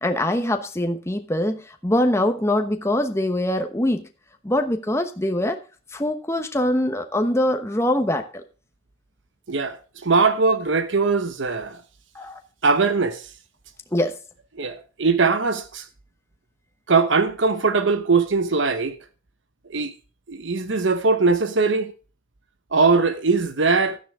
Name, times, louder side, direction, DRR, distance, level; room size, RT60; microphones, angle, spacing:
voice 1, 0.0-4.0 4.4-5.6 5.9-8.4 12.1-12.4 13.9-14.1, left 1 dB, 15° left, 1.0 m, -23 dB
voice 2, 9.5-11.8 12.6-13.3 14.6-15.9 16.9-19.0 19.7-19.9 20.3-21.9 22.7-24.0, right 4 dB, 90° right, 1.0 m, -21 dB
12.5 x 10.0 x 3.7 m
head